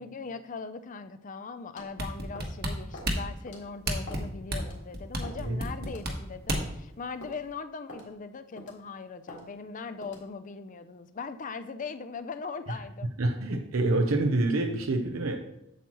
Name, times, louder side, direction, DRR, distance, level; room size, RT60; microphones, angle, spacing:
voice 1, 0.0-13.1, left 4 dB, 40° left, 11 dB, 0.5 m, -40 dB
sound 1, 1.8-2.0 2.4-2.6 2.9-3.1 3.5-3.6 4.1-4.3 4.6-4.8 5.2-5.5 5.9-6.0 6.5-6.7 7.2-7.4 7.9-8.1 8.6-8.8 9.3-9.4 10.0-10.3, left 2 dB, 60° left, 2.0 m, -44 dB
sound 2, 2.0-6.8 7.3-7.4, right 1 dB, 50° right, 1.3 m, -31 dB
voice 2, 13.2-15.5, right 2 dB, 80° right, 3 dB, 0.8 m, -27 dB
8.0 x 7.6 x 3.0 m, 0.82 s
head